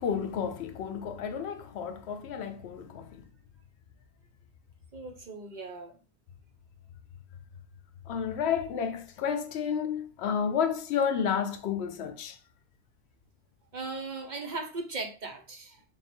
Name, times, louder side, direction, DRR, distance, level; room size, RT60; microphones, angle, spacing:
voice 1, 0.0-3.3 8.1-12.4, left 7 dB, 80° left, 0.8 m, -31 dB
voice 2, 4.9-5.9 13.7-15.8, right 3 dB, 50° right, 0.8 m, -38 dB
3.4 x 2.4 x 4.3 m
omnidirectional pair, 1.1 m